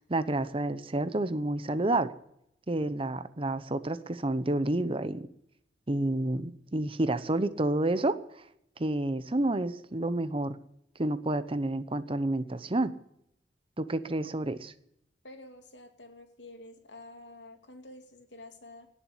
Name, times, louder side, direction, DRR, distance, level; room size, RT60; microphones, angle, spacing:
voice 1, 0.0-2.1 2.7-5.3 5.9-8.4 8.8-10.6 11.0-12.9 13.8-14.7, right 2 dB, 30° right, 14 dB, 0.8 m, -29 dB
voice 2, 15.2-18.9, left 2 dB, 80° left, 6 dB, 2.6 m, -49 dB
18.0 x 7.3 x 9.9 m, 0.76 s
head